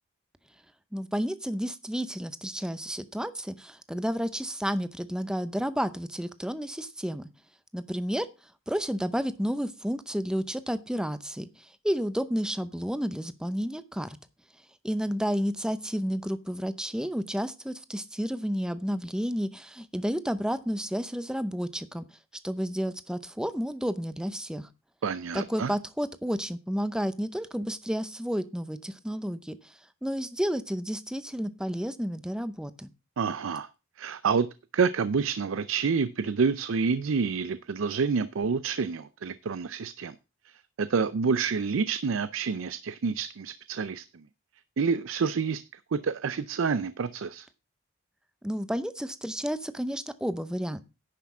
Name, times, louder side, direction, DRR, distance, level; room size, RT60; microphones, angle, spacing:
voice 1, 0.9-7.3 7.7-8.3 8.7-14.2 14.8-22.2 22.4-24.7 25.3-32.9 48.4-50.8, equal, 5° right, 0.6 m, -31 dB
voice 2, 25.0-25.7 33.2-33.7 34.0-34.5 34.7-40.1 40.5-44.1 44.8-45.6 45.9-47.5, right 5 dB, 75° right, 0.5 m, -28 dB
10.5 x 5.8 x 6.0 m
head